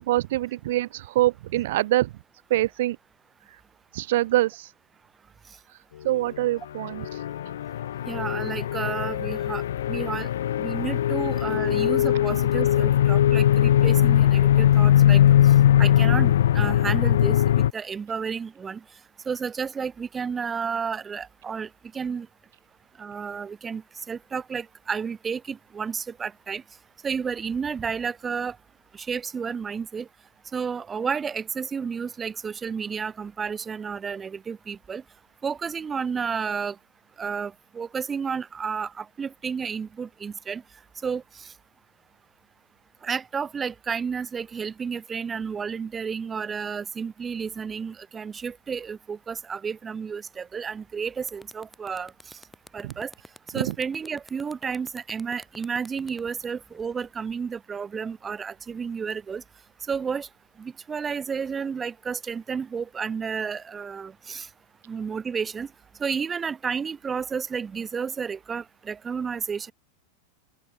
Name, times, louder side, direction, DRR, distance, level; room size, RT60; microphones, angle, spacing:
voice 1, 0.0-2.1 2.5-3.0 3.9-4.7 6.0-7.0, right 16 dB, 55° right, 1.1 m, -24 dB
sound 1, 6.8-17.7, left 11 dB, 60° left, 0.5 m, -20 dB
voice 2, 8.1-10.3 10.6-18.8 19.3-21.7 21.9-22.3 23.0-23.8 24.1-26.6 27.0-28.6 28.9-30.1 30.5-35.0 35.4-36.8 37.2-40.6 41.0-41.5 43.0-52.1 52.7-53.1 53.5-59.4 59.9-60.3 60.6-64.5 64.9-65.7 66.0-69.7, right 6 dB, 20° right, 3.6 m, -31 dB
sound 2, 50.8-50.9 51.2-57.3, left 2 dB, 5° left, 7.9 m, -49 dB
open air
figure-of-eight pair, 90°, 0 cm